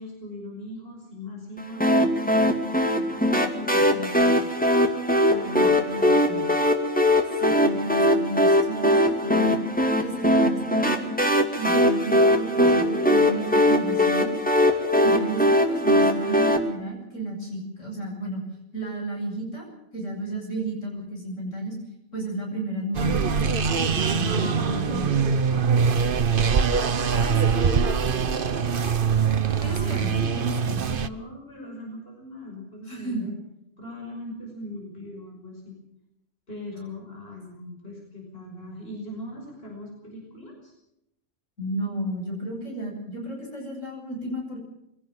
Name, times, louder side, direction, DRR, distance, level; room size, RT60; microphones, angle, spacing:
voice 1, 0.0-2.5 2.9-4.6 5.2-6.6 15.0-15.4 20.3-20.4 24.2-25.8 29.6-33.3 33.8-35.8 36.5-40.7, left 1 dB, 50° left, 0 dB, 6.2 m, -39 dB
sound 1, 1.8-16.6, left 1 dB, 5° left, 2.3 m, -21 dB
voice 2, 5.4-6.4 7.4-9.6 10.0-11.0 11.6-14.3 15.0-18.4 18.7-21.7 22.1-23.5 23.9-25.1 27.2-27.9 28.3-29.2 29.6-30.8 32.9-33.3 41.6-44.6, right 1 dB, 80° left, 0 dB, 8.0 m, -33 dB
sound 2, 22.9-31.1, right 6 dB, 50° right, 1.1 m, -23 dB
23.5 x 17.0 x 7.4 m, 0.81 s
omnidirectional pair, 1.3 m